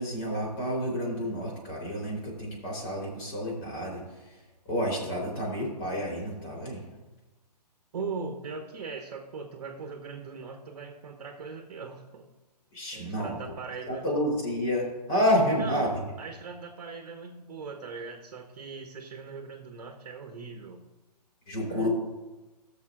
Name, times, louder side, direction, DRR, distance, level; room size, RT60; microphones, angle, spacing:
voice 1, 0.0-6.9 12.7-13.5 13.9-16.0 21.5-21.9, equal, 35° left, -3 dB, 3.7 m, -30 dB
voice 2, 7.9-12.3 12.9-14.0 15.6-20.8 21.7-21.9, right 4 dB, 50° right, 5 dB, 1.1 m, -40 dB
18.5 x 6.7 x 2.5 m, 1.1 s
figure-of-eight pair, 135°, 21 cm